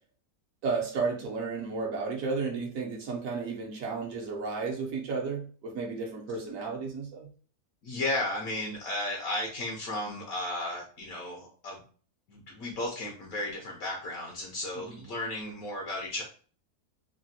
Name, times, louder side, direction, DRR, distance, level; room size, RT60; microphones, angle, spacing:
voice 1, 0.6-7.3 14.8-14.9, right 4 dB, 65° right, -1 dB, 1.0 m, -33 dB
voice 2, 7.8-11.8 12.3-16.2, left 1 dB, 70° left, -1 dB, 1.0 m, -34 dB
3.3 x 2.2 x 2.6 m, 0.41 s
omnidirectional pair, 1.6 m